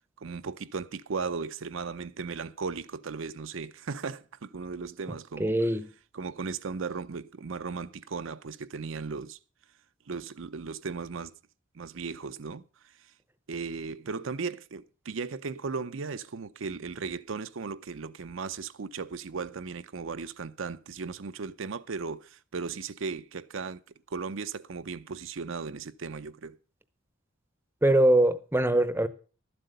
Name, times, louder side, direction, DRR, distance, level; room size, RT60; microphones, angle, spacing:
voice 1, 0.2-5.5 6.1-9.4 10.1-11.3 11.7-13.1 13.5-23.8 24.1-26.6, right 5 dB, 70° right, 0.6 m, -36 dB
voice 2, 5.4-5.9 27.8-29.1, right 1 dB, 10° right, 0.8 m, -22 dB
12.5 x 7.7 x 6.6 m
head